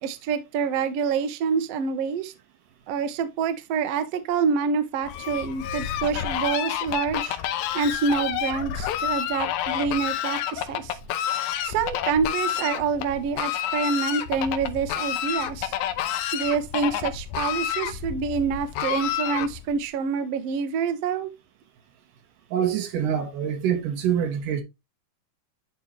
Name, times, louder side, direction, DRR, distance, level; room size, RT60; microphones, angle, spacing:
voice 1, 0.0-2.3 2.9-7.4 7.7-11.0 11.6-15.7 16.3-21.3, right 5 dB, 65° right, 1.7 m, -27 dB
Fowl, 5.0-19.8, left 10 dB, 75° left, 2.2 m, -29 dB
voice 2, 22.5-24.6, right 9 dB, 85° right, 2.9 m, -25 dB
11.0 x 4.2 x 3.0 m
omnidirectional pair, 3.7 m